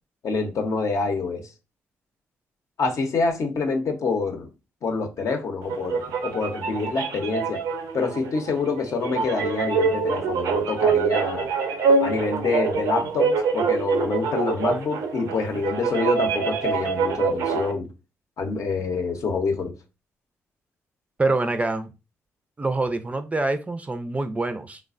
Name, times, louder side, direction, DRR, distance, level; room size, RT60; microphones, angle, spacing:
voice 1, 0.2-1.4 2.8-4.5 4.8-7.6 7.9-11.5 12.0-17.9 18.4-19.7, left 4 dB, 60° left, 0.7 m, -26 dB
sound 1, 5.6-17.7, right 5 dB, 80° right, 0.5 m, -25 dB
voice 2, 21.2-21.9 22.6-24.8, right 2 dB, 25° right, 0.4 m, -25 dB
3.2 x 2.1 x 2.4 m
supercardioid pair, 50°, 6 cm